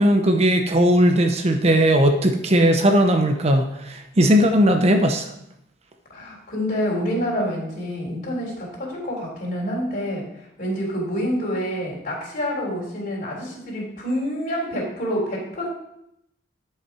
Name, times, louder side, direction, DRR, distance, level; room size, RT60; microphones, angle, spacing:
voice 1, 0.0-5.3, equal, 35° right, 5 dB, 0.7 m, -18 dB
voice 2, 6.1-15.7, equal, 45° left, -3 dB, 3.3 m, -27 dB
10.5 x 5.7 x 4.8 m, 0.78 s
head